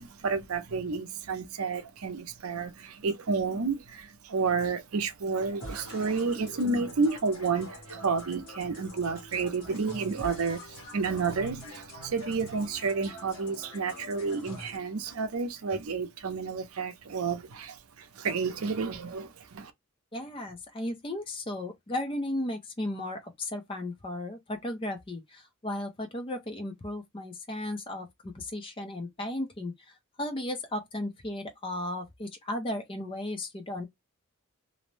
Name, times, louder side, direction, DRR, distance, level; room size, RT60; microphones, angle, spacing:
voice 1, 0.0-19.7, right 4 dB, 80° right, 0.6 m, -31 dB
sound 1, 5.6-14.8, left 1 dB, 85° left, 1.2 m, -45 dB
voice 2, 20.1-33.9, left 1 dB, 25° left, 0.5 m, -35 dB
2.6 x 2.0 x 3.1 m
head